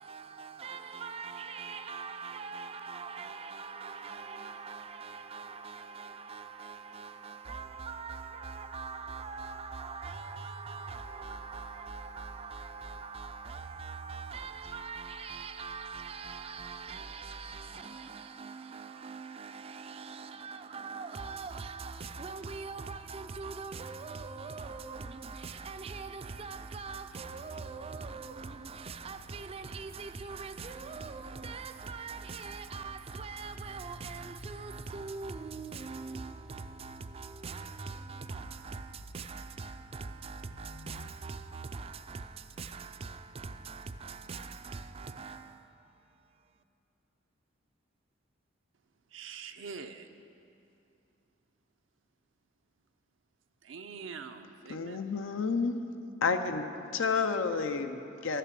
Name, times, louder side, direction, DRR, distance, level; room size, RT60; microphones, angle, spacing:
voice 1, 0.0-46.6, right 4 dB, 30° right, 0.4 m, -42 dB
sound 1, 21.9-41.1, left 3 dB, 40° left, 0.4 m, -57 dB
voice 2, 49.1-50.1 53.6-55.0, right 5 dB, 75° right, 0.6 m, -44 dB
voice 3, 54.7-55.8 56.2-56.6 56.9-58.4, left 4 dB, 85° left, 0.6 m, -30 dB
12.0 x 6.7 x 7.5 m
head